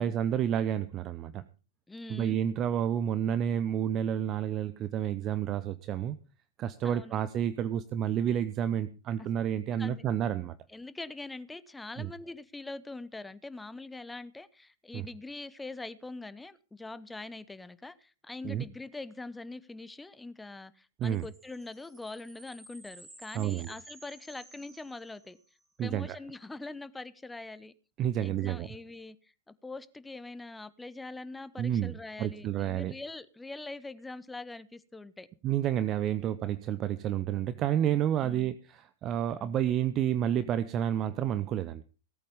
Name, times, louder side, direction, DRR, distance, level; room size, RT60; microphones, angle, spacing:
voice 1, 0.0-1.4 2.1-6.2 6.6-10.5 12.0-12.1 14.9-15.1 18.4-18.6 21.0-21.3 23.3-23.7 25.8-26.2 28.0-28.7 31.6-32.9 35.4-41.8, right 10 dB, 35° right, 0.7 m, -30 dB
voice 2, 1.9-2.4 6.8-7.2 9.2-9.3 9.8-10.0 10.7-25.4 25.8-27.7 28.2-29.2 29.5-35.3 36.0-36.3 38.2-38.5 39.4-39.5, left 2 dB, 10° left, 0.9 m, -43 dB
sound 1, 21.0-25.6, right 2 dB, 15° right, 3.8 m, -54 dB
17.5 x 8.6 x 5.3 m
figure-of-eight pair, 100°, 0 cm